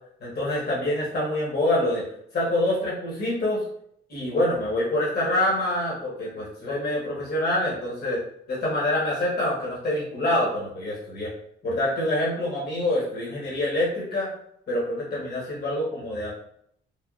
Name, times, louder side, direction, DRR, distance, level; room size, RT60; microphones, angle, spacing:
voice 1, 0.2-2.0 2.3-3.6 4.1-8.2 8.5-11.3 11.6-14.3 14.7-16.3, left 1 dB, 50° left, -6 dB, 1.2 m, -26 dB
3.4 x 2.2 x 2.4 m, 0.69 s
cardioid pair, 90°, 20 cm